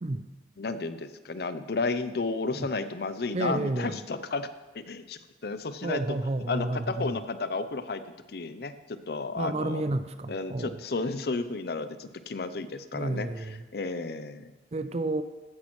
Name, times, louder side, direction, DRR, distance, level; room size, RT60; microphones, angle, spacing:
voice 1, 0.6-4.5 4.7-6.2 6.5-8.0 8.3-8.7 9.1-9.8 10.3-14.5, left 3 dB, 60° left, 12 dB, 0.6 m, -32 dB
voice 2, 3.3-4.0 5.8-7.2 9.4-10.7 12.9-13.6 14.7-15.2, right 2 dB, 35° right, 11 dB, 0.5 m, -31 dB
15.0 x 8.5 x 3.1 m, 1.1 s
head